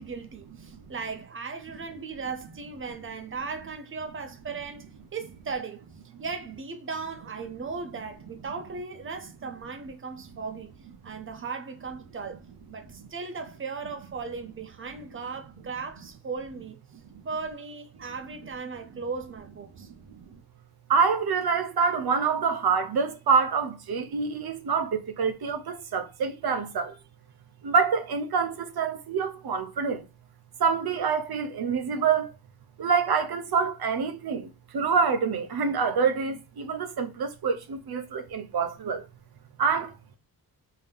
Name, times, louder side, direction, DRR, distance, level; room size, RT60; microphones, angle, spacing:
voice 1, 0.0-5.8 6.2-10.7 11.0-12.4 12.7-16.8 17.2-19.9, right 4 dB, 35° right, 0.7 m, -37 dB
voice 2, 20.9-27.0 27.6-30.0 30.6-32.3 32.8-39.0 39.6-39.9, right 5 dB, 75° right, 0.8 m, -26 dB
3.7 x 2.8 x 3.3 m
wide cardioid pair, 175°, 38 cm